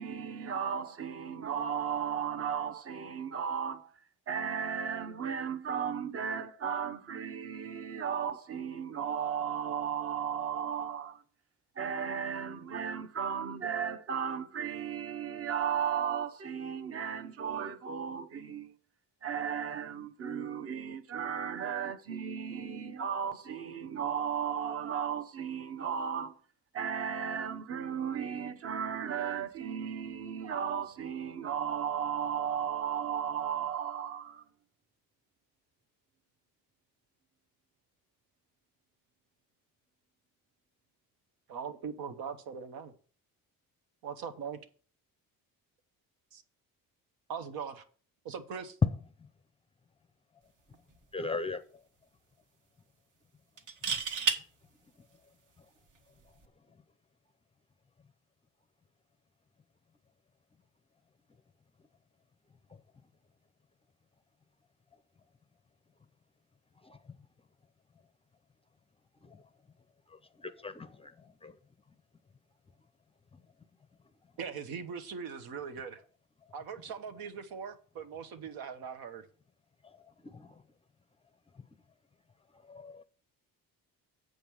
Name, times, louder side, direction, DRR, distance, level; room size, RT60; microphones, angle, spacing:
voice 1, 0.0-3.9 4.3-11.2 11.8-18.7 19.2-26.4 26.7-34.4, right 8 dB, 40° right, 0.9 m, -35 dB
voice 2, 41.5-42.9 44.0-44.6 46.3-46.4 47.3-47.8 48.2-48.8 74.4-76.0 76.5-79.2, right 6 dB, 85° right, 1.3 m, -40 dB
sound 1, 50.7-51.0 51.3-51.4 53.6-54.4 56.2-56.5, right 5 dB, 60° right, 1.3 m, -31 dB
voice 3, 51.1-51.6 66.9-67.0 70.4-71.1 71.4-71.5 80.3-80.5 82.7-83.0, left 4 dB, 15° left, 0.5 m, -33 dB
7.9 x 5.3 x 6.2 m
cardioid pair, 135°, 35 cm